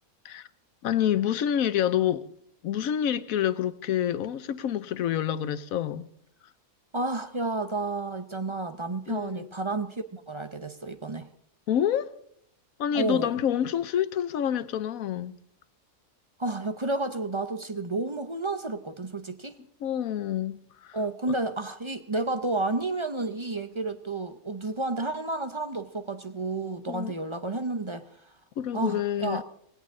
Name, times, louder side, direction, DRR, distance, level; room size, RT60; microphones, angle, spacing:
voice 1, 0.8-2.3 2.6-6.1 9.1-9.5 11.7-12.1 12.8-15.4 19.8-21.0 21.3-21.4 26.9-27.1 28.6-29.4, left 10 dB, 75° left, 1.2 m, -27 dB
voice 2, 6.9-11.3 12.9-13.3 16.4-19.6 20.9-28.0 28.7-29.4, right 2 dB, 30° right, 0.6 m, -31 dB
18.0 x 17.5 x 3.7 m
omnidirectional pair, 1.5 m